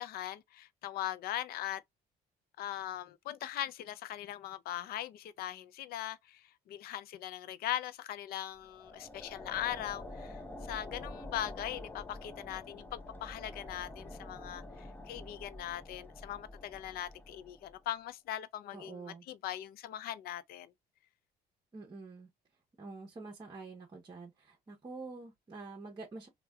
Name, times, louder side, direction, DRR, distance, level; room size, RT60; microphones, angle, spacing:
voice 1, 0.0-1.8 2.6-20.7, left 12 dB, 65° left, 0.4 m, -40 dB
sound 1, 8.5-17.9, left 2 dB, 10° left, 0.5 m, -47 dB
voice 2, 18.7-19.2 21.7-22.3 22.8-26.3, right 3 dB, 25° right, 0.8 m, -47 dB
3.2 x 2.2 x 2.2 m
cardioid pair, 110°, 17 cm